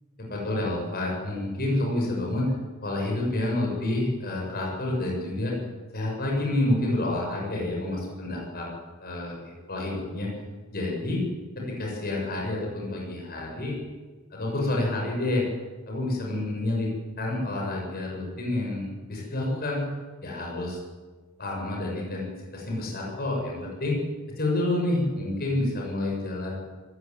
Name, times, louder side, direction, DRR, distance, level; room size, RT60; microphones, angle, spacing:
voice 1, 0.2-2.5 2.8-5.5 5.9-8.6 9.0-10.3 10.7-11.2 11.6-13.8 14.3-15.4 15.9-16.9 17.2-19.8 20.2-20.8 21.4-24.0 24.4-26.5, left 1 dB, 45° left, -1 dB, 7.8 m, -28 dB
24.5 x 15.5 x 9.9 m, 1.3 s
head